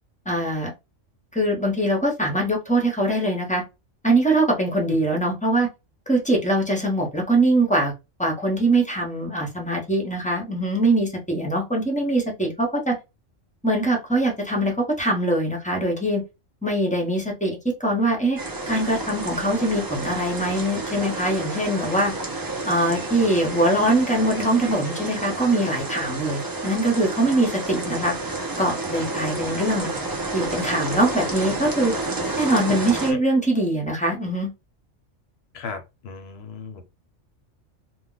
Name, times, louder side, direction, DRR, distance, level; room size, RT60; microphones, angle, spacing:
voice 1, 0.3-0.7 1.3-3.6 4.0-5.7 6.1-7.9 8.2-13.0 13.6-16.2 16.6-18.4 18.7-22.1 22.7-28.1 28.6-29.9 30.3-31.9 32.4-34.5, right 1 dB, 5° left, 0.7 m, -22 dB
sound 1, 18.4-33.1, right 2 dB, 30° right, 0.4 m, -30 dB
voice 2, 35.5-36.8, left 5 dB, 65° left, 0.8 m, -36 dB
2.3 x 2.2 x 3.8 m
omnidirectional pair, 1.3 m